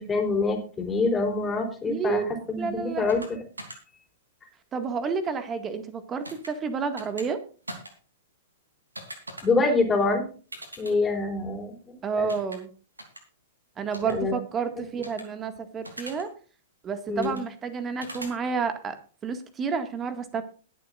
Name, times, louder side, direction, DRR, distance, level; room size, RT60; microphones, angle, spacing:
voice 1, 0.0-2.2 2.5-3.2 9.4-10.3 10.8-12.3 14.0-14.3 17.1-17.4, left 3 dB, 15° left, 3 dB, 3.9 m, -25 dB
voice 2, 1.9-2.3 2.6-3.1 4.7-7.4 12.0-12.7 13.8-16.3 16.8-19.0 19.2-20.4, right 5 dB, 25° right, 9 dB, 1.9 m, -30 dB
sound 1, 3.1-3.3 3.6-3.8 6.2-6.5 7.0-7.3 7.7-7.9 9.0-9.4 10.5-10.9 12.3-12.6 13.0-13.2 13.9-14.1 15.0-15.2 15.8-16.2 17.2-17.4 18.0-18.3, right 1 dB, 90° right, 3.1 m, -40 dB
21.5 x 8.1 x 2.5 m, 0.38 s
figure-of-eight pair, 105°, 0 cm